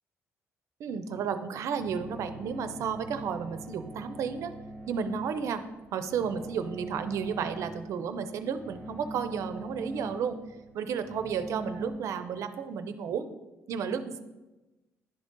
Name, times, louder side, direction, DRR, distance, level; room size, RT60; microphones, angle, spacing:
voice 1, 0.8-4.5 4.9-5.6 5.9-10.4 10.7-13.3 13.7-14.2, right 6 dB, 65° right, 10 dB, 0.5 m, -32 dB
sound 1, 1.8-11.9, right 1 dB, 5° right, 2.1 m, -43 dB
11.0 x 3.9 x 3.7 m, 1.1 s
cardioid pair, 150°, 6 cm